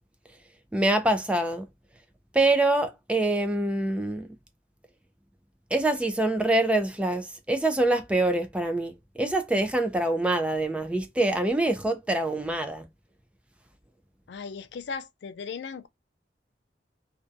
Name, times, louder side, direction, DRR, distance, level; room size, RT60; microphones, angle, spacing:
voice 1, 0.7-1.7 2.3-4.3 5.7-12.9, right 2 dB, 5° right, 0.4 m, -25 dB
voice 2, 14.3-15.9, left 5 dB, 75° left, 0.4 m, -37 dB
2.6 x 2.1 x 2.4 m
head